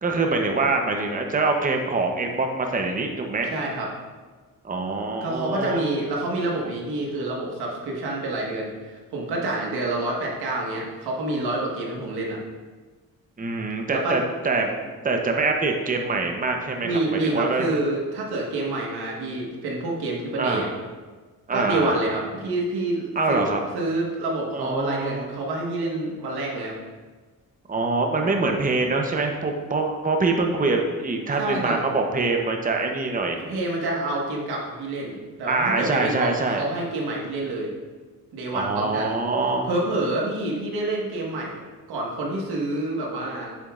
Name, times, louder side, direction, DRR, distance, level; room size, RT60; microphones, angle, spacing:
voice 1, 0.0-3.5 4.6-5.9 13.4-14.8 15.0-16.9 17.2-17.7 20.4-20.7 21.5-22.0 23.2-23.6 24.5-25.4 27.7-33.4 35.5-36.7 38.5-39.7, right 3 dB, 20° right, 2 dB, 0.8 m, -24 dB
voice 2, 3.5-3.9 5.2-12.4 13.9-14.2 16.8-20.7 21.5-23.5 23.7-26.7 31.3-31.8 33.4-37.7 38.3-39.2 39.6-43.5, right 2 dB, 90° right, -2 dB, 1.6 m, -27 dB
8.0 x 7.2 x 2.5 m, 1.4 s
cardioid pair, 85°, 37 cm